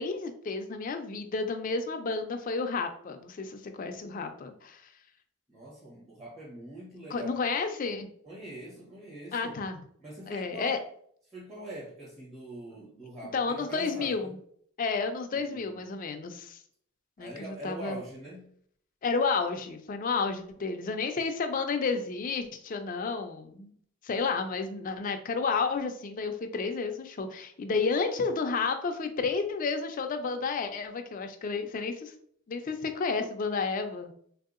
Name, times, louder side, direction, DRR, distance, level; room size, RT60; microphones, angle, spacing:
voice 1, 0.0-4.8 7.1-8.1 9.3-9.8 10.3-10.8 13.3-14.4 14.8-16.6 17.2-18.0 19.0-23.7 24.0-32.1 32.5-34.1, left 4 dB, 40° left, 6 dB, 0.3 m, -31 dB
voice 2, 5.5-7.4 8.2-9.6 10.0-10.8 11.3-14.3 15.3-15.8 17.2-18.5, right 1 dB, 30° right, -7 dB, 0.9 m, -43 dB
3.4 x 2.7 x 2.4 m, 0.63 s
head